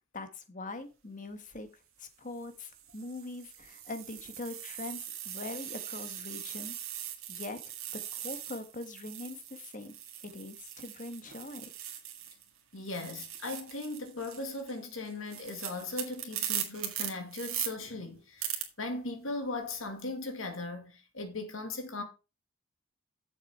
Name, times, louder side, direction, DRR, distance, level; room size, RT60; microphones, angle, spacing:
voice 1, 0.1-1.7 2.0-6.8 7.3-7.6 7.9-9.9 10.2-11.7, left 2 dB, 40° left, 1.3 m, -42 dB
sound 1, 1.3-1.6 2.3-12.5 12.8-17.7 18.4-18.6, right 10 dB, 75° right, 1.9 m, -40 dB
voice 2, 12.7-22.0, left 2 dB, 70° left, 2.1 m, -38 dB
7.2 x 7.2 x 4.6 m
head